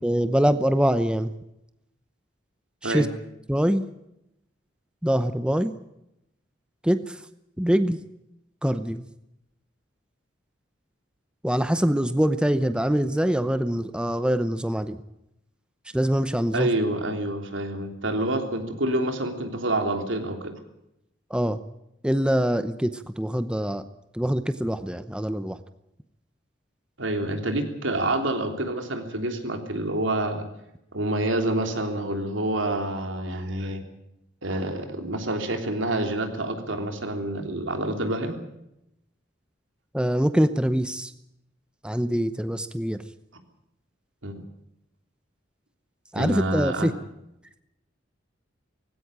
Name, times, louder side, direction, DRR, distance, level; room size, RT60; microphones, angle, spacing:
voice 1, 0.0-1.3 2.8-3.1 3.5-3.8 5.0-5.7 6.8-7.2 7.6-8.0 8.6-9.0 11.4-15.0 15.9-16.7 21.3-21.6 22.0-23.8 24.1-25.6 39.9-41.1 41.8-43.0 46.1-46.9, equal, 5° right, 11 dB, 0.8 m, -24 dB
voice 2, 16.5-20.6 27.0-30.5 30.9-33.8 34.4-38.4 44.2-44.4 46.1-47.0, right 1 dB, 85° right, 5 dB, 3.3 m, -27 dB
18.5 x 16.5 x 8.8 m, 0.83 s
head